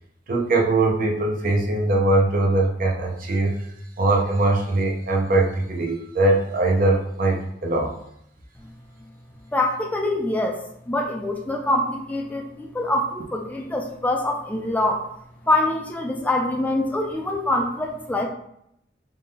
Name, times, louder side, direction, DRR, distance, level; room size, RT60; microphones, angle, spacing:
voice 1, 0.3-3.5 4.0-7.9, right 2 dB, 50° right, 1 dB, 0.6 m, -21 dB
voice 2, 9.5-15.1 15.4-18.3, left 1 dB, 10° left, 0 dB, 0.3 m, -24 dB
3.7 x 2.1 x 3.9 m, 0.75 s
head